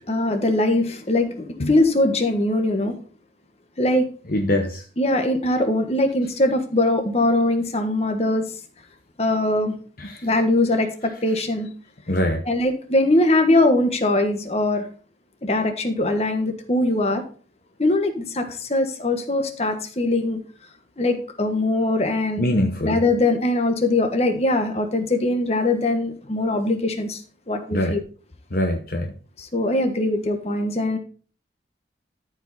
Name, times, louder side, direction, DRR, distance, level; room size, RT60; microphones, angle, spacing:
voice 1, 0.1-3.0 3.8-4.1 5.0-8.5 9.2-9.8 10.2-11.7 12.4-14.9 15.4-17.2 17.8-20.4 21.0-22.5 22.8-27.2 27.5-28.0 29.4-31.0, left 2 dB, 35° left, 6 dB, 1.4 m, -21 dB
voice 2, 4.3-4.8 10.0-10.2 12.1-12.4 22.4-23.0 27.7-28.0 28.5-29.1, left 1 dB, 50° left, 4 dB, 0.9 m, -23 dB
13.0 x 5.1 x 4.1 m, 0.40 s
head